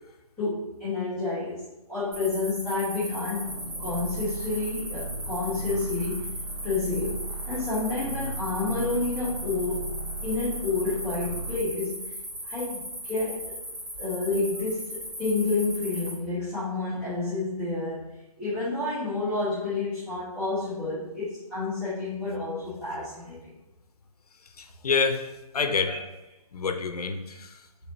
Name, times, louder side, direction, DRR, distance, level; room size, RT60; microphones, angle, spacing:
voice 1, 0.4-1.6 1.9-6.3 6.6-9.9 10.2-12.1 12.4-13.5 14.0-18.0 18.4-23.4 25.9-26.0, left 3 dB, ahead, -17 dB, 0.4 m, -29 dB
sound 1, 2.1-16.1, equal, 20° right, 0.8 m, -38 dB
sound 2, 3.4-11.7, right 2 dB, 65° right, 0.7 m, -37 dB
voice 2, 24.4-26.0 26.5-27.7, left 5 dB, 75° left, 7 dB, 0.5 m, -28 dB
3.3 x 3.0 x 3.9 m, 0.94 s
figure-of-eight pair, 155°, 20 cm